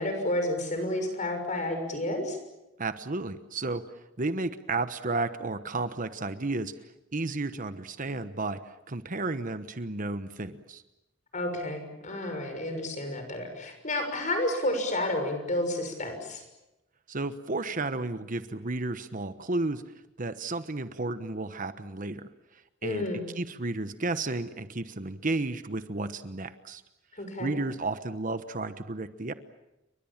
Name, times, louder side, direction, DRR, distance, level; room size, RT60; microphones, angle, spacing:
voice 1, 0.0-2.4 11.3-16.4 22.8-23.2 27.2-27.6, left 1 dB, 40° left, 6 dB, 6.5 m, -31 dB
voice 2, 2.8-3.8 4.2-6.7 7.1-10.8 17.1-19.8 20.2-22.3 22.8-23.1 23.3-26.8 27.4-29.3, right 2 dB, 45° right, 11 dB, 1.1 m, -32 dB
30.0 x 23.5 x 7.4 m, 0.93 s
head